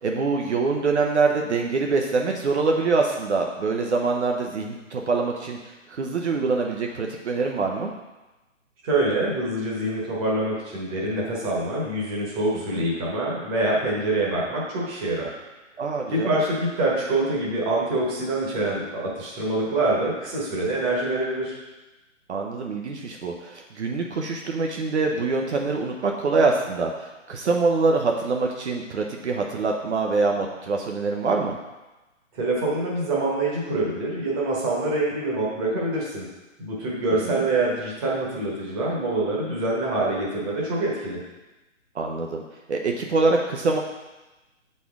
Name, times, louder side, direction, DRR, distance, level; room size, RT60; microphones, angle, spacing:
voice 1, 0.0-7.9 12.7-12.9 15.8-16.3 22.3-31.6 37.2-37.4 41.9-42.4 42.7-43.8, right 4 dB, 60° right, 1 dB, 0.8 m, -24 dB
voice 2, 8.8-15.4 16.1-21.6 32.3-36.2 36.6-41.2, right 2 dB, 20° right, -5 dB, 1.1 m, -25 dB
6.9 x 4.2 x 3.6 m, 1.1 s
hypercardioid pair, 155°, 39 cm